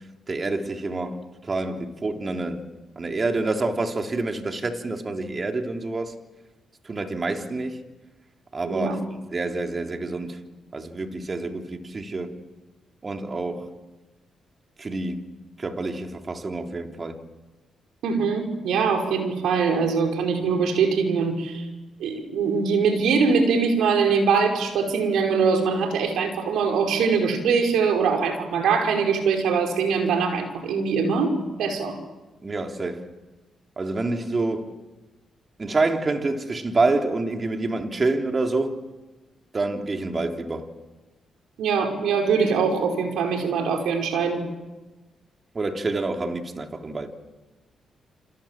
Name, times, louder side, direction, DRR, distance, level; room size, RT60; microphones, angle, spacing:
voice 1, 0.3-2.7 2.9-6.1 6.8-7.8 8.5-9.0 9.3-10.4 10.7-12.4 13.0-13.7 14.8-17.2 32.4-33.1 33.8-34.8 35.6-38.8 39.5-40.7 45.5-47.2, right 3 dB, 40° right, 3.5 m, -27 dB
voice 2, 8.6-9.0 18.0-21.7 22.0-31.3 31.6-32.0 41.6-44.4, right 5 dB, 80° right, 5.1 m, -22 dB
28.5 x 26.5 x 7.5 m
supercardioid pair, 55°, 0 cm